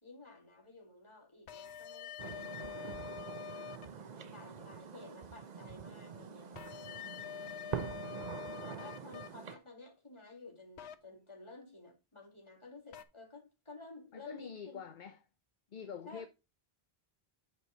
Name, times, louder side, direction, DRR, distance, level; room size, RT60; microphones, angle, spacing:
voice 1, 0.0-3.4 3.8-8.0 8.6-14.8 16.1-16.3, left 3 dB, 25° left, 2.4 m, -54 dB
sound 1, 1.5-3.9 6.6-9.3 10.8-11.0 12.9-13.0, left 8 dB, 85° left, 0.9 m, -45 dB
sound 2, 2.2-9.6, right 7 dB, 50° right, 0.7 m, -45 dB
voice 2, 14.1-15.2 15.7-16.3, left 7 dB, 50° left, 0.8 m, -45 dB
8.2 x 4.6 x 4.3 m
omnidirectional pair, 1.1 m